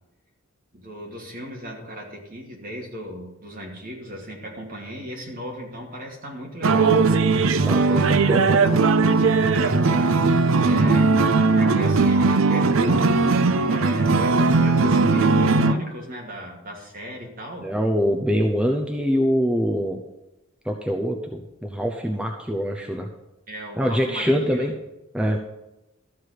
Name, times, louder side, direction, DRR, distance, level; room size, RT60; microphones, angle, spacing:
voice 1, 0.7-7.1 7.7-8.4 9.3-11.2 11.5-13.2 13.6-17.7 23.5-24.7, equal, 40° right, -1 dB, 2.5 m, -36 dB
sound 1, 6.6-15.7, right 3 dB, 70° right, 0.6 m, -18 dB
voice 2, 7.6-8.8 17.6-20.0 20.6-23.1 23.8-24.7 25.1-25.4, equal, 5° right, 2 dB, 0.7 m, -24 dB
13.0 x 4.7 x 8.3 m, 0.98 s
head